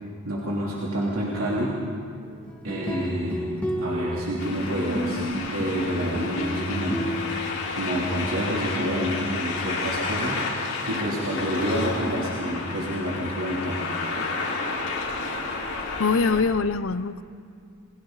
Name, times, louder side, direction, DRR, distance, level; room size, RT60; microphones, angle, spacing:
voice 1, 0.2-1.7 2.6-7.1 7.7-13.8, equal, 70° right, -6 dB, 3.2 m, -28 dB
sound 1, 2.5-8.0, equal, 5° left, 2.1 m, -32 dB
sound 2, 4.4-16.4, left 3 dB, 85° left, 4.6 m, -31 dB
voice 2, 16.0-17.2, left 4 dB, 70° left, 14 dB, 0.7 m, -23 dB
29.5 x 22.0 x 4.0 m, 2.4 s
head